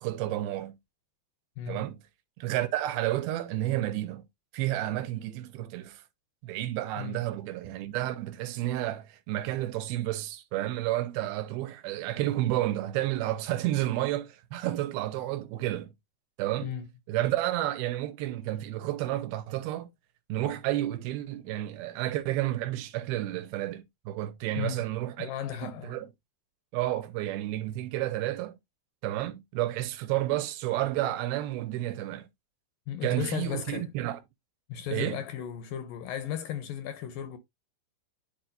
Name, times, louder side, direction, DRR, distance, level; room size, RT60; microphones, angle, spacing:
voice 1, 0.0-0.8 1.7-2.0 2.4-4.3 4.5-6.0 6.4-15.9 16.4-16.7 17.1-19.9 20.3-25.3 25.6-26.1 26.7-28.6 29.0-32.3 33.0-34.2 34.9-35.2, right 14 dB, 85° right, 2.5 m, -31 dB
voice 2, 7.0-7.3 16.6-16.9 24.6-24.8 25.2-26.0 32.9-33.9 34.7-37.4, left 10 dB, 75° left, 2.1 m, -35 dB
10.5 x 4.4 x 2.6 m
omnidirectional pair, 4.6 m